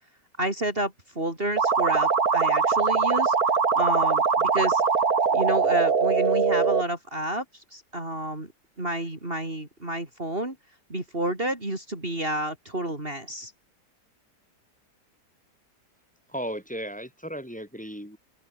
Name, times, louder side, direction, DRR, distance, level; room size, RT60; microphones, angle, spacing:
voice 1, 0.4-3.3 3.7-4.8 5.3-8.5 8.8-10.6 10.9-13.5, right 1 dB, 35° right, 5.3 m, -30 dB
sound 1, 1.6-6.8, right 5 dB, 60° right, 2.7 m, -22 dB
voice 2, 16.3-18.2, equal, 5° left, 8.0 m, -35 dB
open air
omnidirectional pair, 1.8 m